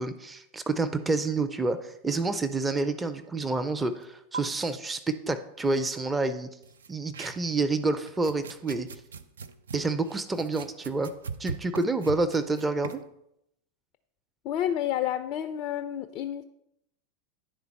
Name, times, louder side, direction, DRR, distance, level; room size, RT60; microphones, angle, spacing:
voice 1, 0.0-6.5 6.9-8.9 9.7-11.1 11.4-13.0, right 3 dB, 15° right, 10 dB, 0.5 m, -28 dB
sound 1, 4.0-4.1 4.3-4.4 6.6-7.7 8.1-13.1, right 5 dB, 70° right, 0.4 m, -40 dB
voice 2, 14.4-16.4, left 11 dB, 40° left, 10 dB, 0.4 m, -30 dB
10.5 x 4.0 x 4.3 m, 0.79 s
figure-of-eight pair, 85°, 0 cm